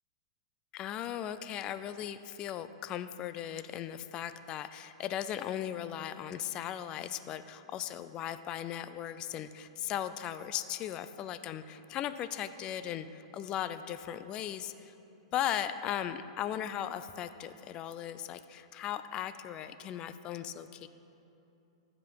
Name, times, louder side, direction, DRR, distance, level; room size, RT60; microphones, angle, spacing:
voice 1, 0.7-14.9 15.3-20.9, left 10 dB, 25° left, 12 dB, 0.3 m, -37 dB
14.0 x 5.1 x 4.6 m, 2.9 s
hypercardioid pair, 150°, 3 cm